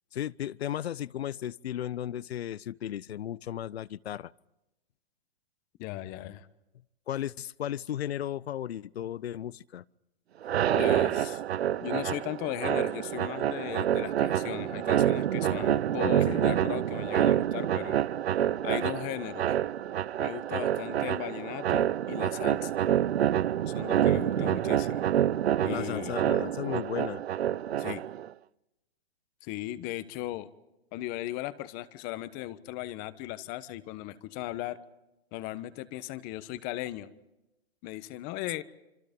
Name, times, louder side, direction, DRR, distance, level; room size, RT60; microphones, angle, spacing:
voice 1, 0.1-4.3 7.1-9.8 16.0-16.5 24.2-24.6 25.7-27.2, left 11 dB, 90° left, 0.7 m, -35 dB
voice 2, 5.8-6.5 10.7-11.4 11.8-18.0 18.6-19.5 20.2-22.8 23.7-25.1 25.6-26.2 27.8-28.0 29.4-30.5 30.9-34.8 35.3-37.1 37.8-38.6, left 15 dB, 30° left, 1.2 m, -37 dB
sound 1, 10.4-28.3, right 10 dB, 90° right, 0.7 m, -27 dB
26.5 x 26.0 x 5.3 m
hypercardioid pair, 150°, 31 cm